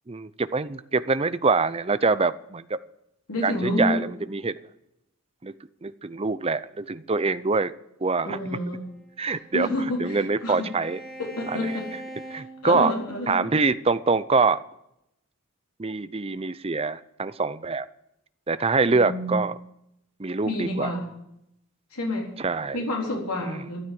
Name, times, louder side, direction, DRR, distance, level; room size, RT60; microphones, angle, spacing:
voice 1, 0.1-2.8 3.4-4.5 5.4-5.5 5.8-7.7 8.0-8.6 9.2-11.0 11.5-11.8 12.3-12.9 13.3-14.6 15.8-17.9 18.5-19.5 20.2-20.9 22.4-22.8 23.4-23.7, right 4 dB, 25° right, 14 dB, 0.6 m, -25 dB
voice 2, 3.3-4.0 8.3-8.8 9.5-10.6 11.2-11.9 12.3-13.4 18.9-19.3 20.4-21.1 21.9-22.3 22.7-23.8, left 1 dB, 80° left, -1 dB, 4.0 m, -29 dB
Bowed string instrument, 8.9-13.4, right 1 dB, ahead, 2.7 m, -43 dB
13.0 x 12.0 x 7.7 m, 0.80 s
head